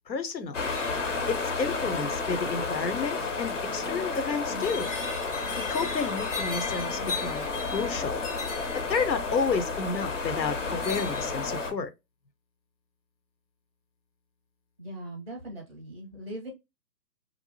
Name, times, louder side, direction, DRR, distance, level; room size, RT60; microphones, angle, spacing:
voice 1, 0.1-0.6 1.3-4.9 5.5-7.5 7.7-8.2 8.7-11.9, left 5 dB, 85° left, 0.8 m, -31 dB
sound 1, 0.5-11.7, left 4 dB, 50° left, 0.6 m, -31 dB
voice 2, 14.8-16.5, right 1 dB, 20° right, 0.5 m, -40 dB
2.6 x 2.1 x 2.9 m
figure-of-eight pair, 150°, 50 cm